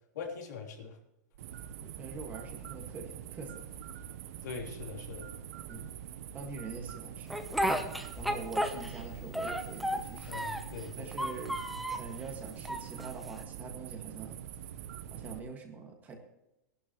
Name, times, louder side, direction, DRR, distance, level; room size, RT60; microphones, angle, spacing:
voice 1, 0.1-1.0 4.4-5.2 5.8-5.9 10.3-11.1, left 5 dB, 80° left, 1 dB, 3.3 m, -42 dB
sound 1, 1.3-15.4, right 9 dB, 55° right, 0.8 m, -44 dB
voice 2, 1.8-3.7 5.7-5.9 6.3-7.4 8.2-10.5 11.0-11.6 11.9-14.4 15.1-16.2, right 4 dB, 20° right, 3 dB, 1.7 m, -44 dB
Speech, 7.3-9.1 9.3-10.8 11.1-12.1 12.7-13.4, equal, ahead, 0.7 m, -33 dB
17.5 x 11.5 x 3.0 m, 0.92 s
supercardioid pair, 165°, 9 cm